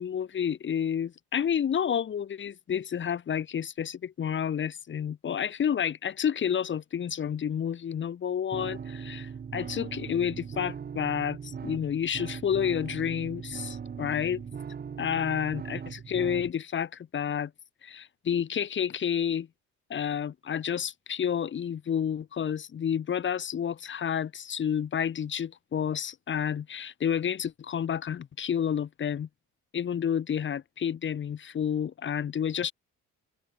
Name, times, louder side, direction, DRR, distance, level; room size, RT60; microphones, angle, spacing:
voice 1, 0.0-14.4 15.0-17.5 17.8-19.5 19.9-29.3 29.7-32.7, left 8 dB, 40° left, 0.8 m, -30 dB
sound 1, 8.5-16.5, right 7 dB, 30° right, 0.8 m, -39 dB
cardioid pair, 90°, 30 cm